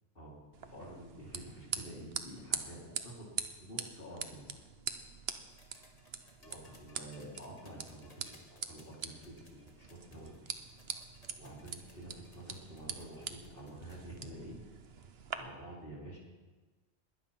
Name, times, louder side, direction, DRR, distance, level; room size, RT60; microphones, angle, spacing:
voice 1, 0.1-3.3 3.6-4.6 6.4-10.5 11.4-14.6 15.3-16.2, right 1 dB, 55° left, -3 dB, 4.2 m, -49 dB
sound 1, 0.5-15.3, right 6 dB, 70° right, 1.2 m, -44 dB
sound 2, 5.5-14.2 15.4-15.5, left 1 dB, 35° left, 2.1 m, -63 dB
20.5 x 9.9 x 5.8 m, 1.2 s
omnidirectional pair, 1.1 m